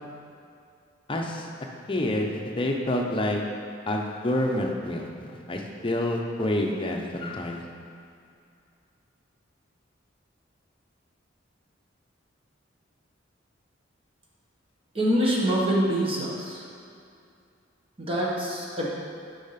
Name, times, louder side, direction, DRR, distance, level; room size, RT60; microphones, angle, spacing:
voice 1, 1.1-1.5 1.9-3.4 3.9-7.6, left 1 dB, 25° left, 1 dB, 0.8 m, -28 dB
voice 2, 14.9-16.6 18.0-18.9, equal, 30° right, -4 dB, 1.4 m, -25 dB
7.0 x 5.6 x 5.8 m, 2.5 s
head